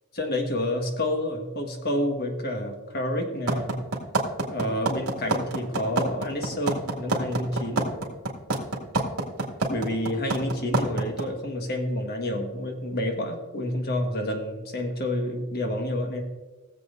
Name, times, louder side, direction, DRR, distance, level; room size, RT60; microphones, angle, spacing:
voice 1, 0.1-3.8 4.5-7.9 9.7-16.2, left 1 dB, 45° left, 3 dB, 1.5 m, -29 dB
sound 1, 3.5-11.2, right 3 dB, 70° right, 2.1 m, -25 dB
18.5 x 7.6 x 2.6 m, 1.3 s
head